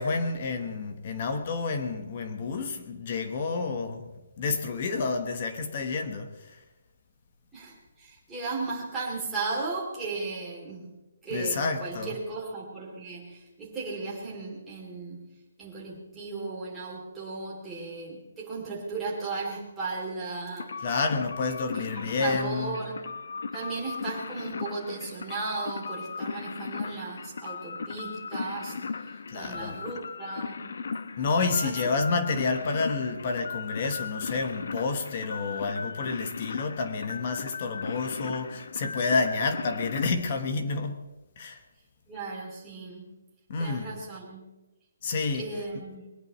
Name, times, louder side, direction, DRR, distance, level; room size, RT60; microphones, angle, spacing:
voice 1, 0.0-6.6 11.3-12.2 20.8-22.8 29.3-29.8 31.2-41.0 41.4-41.6 43.5-43.9 45.0-45.5, left 4 dB, 30° left, 1.1 m, -29 dB
voice 2, 7.5-10.9 11.2-15.3 15.6-20.7 21.7-23.1 23.5-30.6 31.6-31.8 42.1-43.1 43.6-44.5 45.3-46.1, right 3 dB, 5° right, 2.8 m, -36 dB
sound 1, 20.6-40.1, left 5 dB, 60° left, 0.8 m, -37 dB
21.5 x 19.0 x 3.1 m
hypercardioid pair, 180°, 0 cm